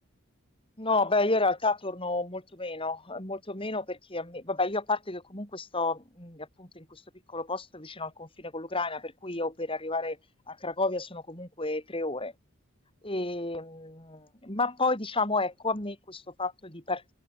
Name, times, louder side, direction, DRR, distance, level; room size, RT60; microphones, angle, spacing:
voice 1, 0.8-7.0 7.3-10.2 10.5-12.3 13.0-17.1, left 3 dB, 25° left, 4.3 m, -31 dB
open air
head